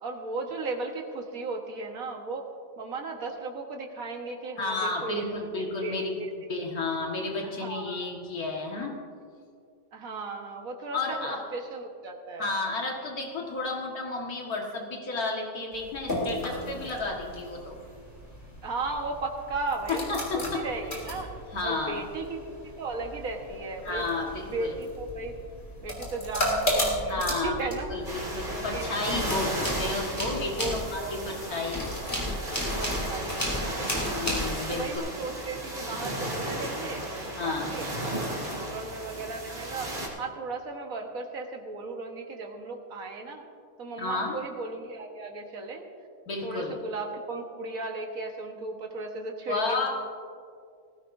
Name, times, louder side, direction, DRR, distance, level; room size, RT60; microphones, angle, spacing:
voice 1, 0.0-2.4 2.8-6.0 6.5-6.7 7.4-8.1 9.9-12.5 18.6-20.2 20.5-21.3 21.6-22.4 22.8-24.1 24.4-25.4 25.8-27.9 28.4-29.5 30.6-31.1 31.4-31.6 32.8-33.9 34.7-37.9 38.4-39.9 40.2-43.4 43.8-45.9 46.4-49.9, right 3 dB, 65° right, 2 dB, 1.8 m, -36 dB
voice 2, 4.6-6.2 6.5-9.0 10.9-11.4 12.4-17.8 19.9-20.6 21.5-22.0 23.8-24.8 27.1-27.6 27.9-31.9 34.1-35.0 37.4-37.7 44.0-44.4 46.3-46.8 49.5-49.9, left 3 dB, 75° left, -1 dB, 2.2 m, -32 dB
sound 1, 15.7-28.8, equal, 45° left, 3.4 m, -35 dB
sound 2, 28.0-40.1, right 1 dB, 35° right, 2.5 m, -35 dB
sound 3, 28.1-28.6 28.9-35.0, equal, 10° left, 3.2 m, -33 dB
19.5 x 15.5 x 2.6 m, 2.2 s
omnidirectional pair, 1.6 m